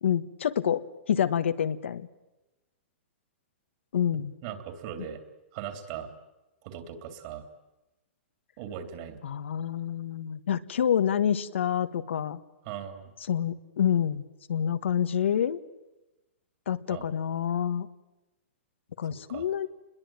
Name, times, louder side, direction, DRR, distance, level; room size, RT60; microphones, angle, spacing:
voice 1, 0.0-2.1 3.9-4.3 9.2-12.4 13.3-14.2 14.5-15.6 16.7-17.9 19.0-19.7, left 9 dB, 75° left, 10 dB, 1.5 m, -27 dB
voice 2, 4.4-5.2 5.5-6.1 6.6-7.4 8.6-9.2 12.6-13.1 16.9-17.1 19.3-19.5, right 9 dB, 30° right, 9 dB, 3.2 m, -39 dB
29.0 x 21.5 x 9.0 m, 1.0 s
hypercardioid pair, 170°, 7 cm